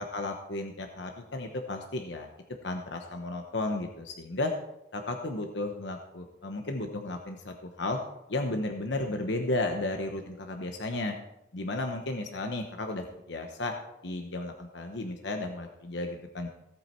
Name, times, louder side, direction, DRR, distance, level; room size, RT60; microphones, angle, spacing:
voice 1, 0.0-2.3 2.6-4.5 4.9-8.0 8.3-11.1 11.5-13.7 14.0-16.5, left 2 dB, 65° left, 4 dB, 1.1 m, -33 dB
16.5 x 8.7 x 4.5 m, 0.88 s
head